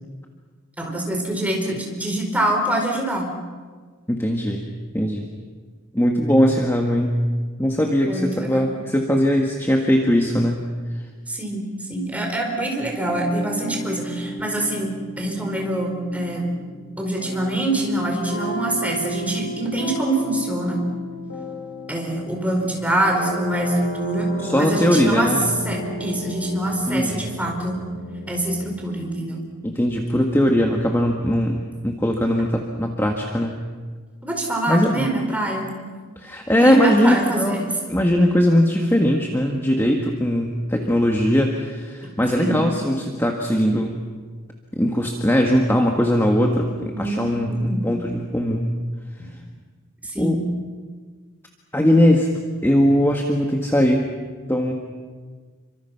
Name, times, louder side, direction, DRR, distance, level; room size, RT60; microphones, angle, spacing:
voice 1, 0.8-3.3 8.1-8.7 11.3-11.6 11.9-14.9 15.2-16.4 17.0-20.8 21.9-24.3 24.5-25.3 25.6-27.8 28.3-29.4 34.2-35.7 36.5-37.7 42.4-42.6 46.6-47.9 50.0-50.4, right 1 dB, 5° right, 1 dB, 4.7 m, -25 dB
voice 2, 4.1-4.6 4.9-5.3 5.9-7.2 7.6-10.6 10.9-11.0 24.4-25.4 26.9-27.3 29.6-33.5 34.7-35.1 36.2-37.6 37.9-44.0 44.7-48.8 50.2-50.4 51.7-52.3 52.6-54.1 54.5-54.7, equal, 10° left, 1 dB, 1.6 m, -20 dB
sound 1, 13.0-28.8, left 1 dB, 75° left, 7.6 m, -33 dB
29.0 x 25.0 x 5.9 m, 1.5 s
head